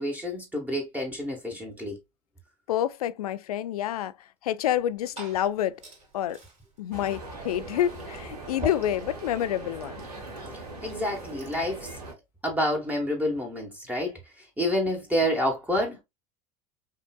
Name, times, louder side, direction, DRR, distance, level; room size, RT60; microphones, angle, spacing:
voice 1, 0.0-2.0 10.8-11.9 12.4-16.0, equal, 10° right, 1.1 m, -28 dB
voice 2, 2.7-4.1 4.4-5.8 6.1-6.4 6.8-9.9, left 11 dB, 70° left, 0.4 m, -28 dB
Glass / Fill (with liquid), 4.7-11.7, left 2 dB, 35° right, 2.0 m, -44 dB
sound 1, 6.9-12.1, right 2 dB, 75° right, 1.2 m, -40 dB
5.5 x 2.5 x 2.2 m
figure-of-eight pair, 75°, 20 cm